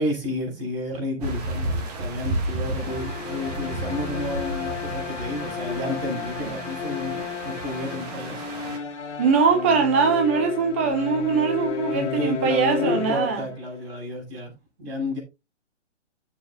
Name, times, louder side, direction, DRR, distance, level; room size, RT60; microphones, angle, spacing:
voice 1, 0.0-8.4 11.9-14.5 14.8-15.2, left 1 dB, 50° right, 6.7 m, -31 dB
sound 1, 1.2-8.8, right 2 dB, 35° right, 1.8 m, -32 dB
sound 2, 2.8-13.9, left 7 dB, 90° left, 1.6 m, -33 dB
voice 2, 9.2-13.5, right 5 dB, 10° right, 0.5 m, -22 dB
15.5 x 7.2 x 2.3 m
hypercardioid pair, 160°, 36 cm